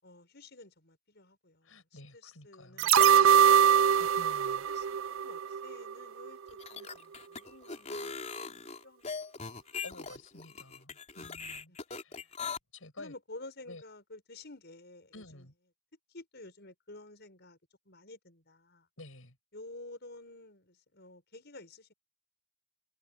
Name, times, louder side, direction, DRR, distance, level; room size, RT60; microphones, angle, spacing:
voice 1, 0.0-3.9 4.7-8.1 8.4-9.0 9.4-9.6 10.5-10.6 12.1-12.3 13.0-15.5 16.1-17.6 17.9-18.9 19.5-21.9, left 2 dB, 55° left, 6.9 m, -51 dB
voice 2, 1.6-2.9 4.0-4.7 9.8-12.3 12.7-13.1 13.7-13.8 15.1-15.5 19.0-19.4, left 2 dB, 90° left, 6.8 m, -51 dB
sound 1, 2.8-5.9 6.3-6.4, right 8 dB, 80° right, 0.5 m, -23 dB
sound 2, 6.5-12.6, left 5 dB, 35° left, 3.8 m, -40 dB
head